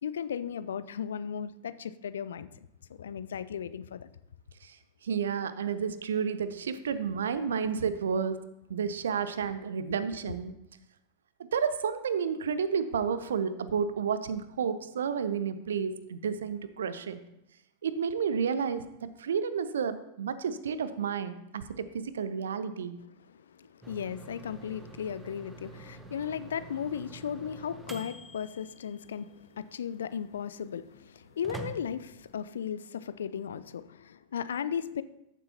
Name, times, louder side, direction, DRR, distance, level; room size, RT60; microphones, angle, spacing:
voice 1, 0.0-4.1 23.2-35.0, left 8 dB, 65° left, 0.4 m, -36 dB
voice 2, 5.0-8.4 8.7-10.5 11.5-17.2 17.8-23.0, right 6 dB, 65° right, 0.6 m, -31 dB
sound 1, 23.8-32.5, right 2 dB, 10° right, 0.9 m, -47 dB
14.0 x 7.4 x 2.8 m
figure-of-eight pair, 90°, 0 cm